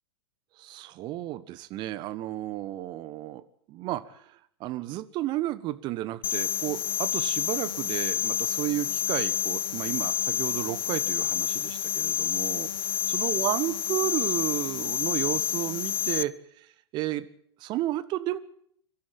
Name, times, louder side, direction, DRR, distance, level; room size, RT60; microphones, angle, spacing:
voice 1, 0.6-17.3 17.6-18.4, right 15 dB, 30° right, 14 dB, 1.3 m, -32 dB
sound 1, 6.2-16.2, left 10 dB, 55° left, 0.8 m, -29 dB
23.5 x 13.0 x 9.1 m, 0.65 s
figure-of-eight pair, 100°, 14 cm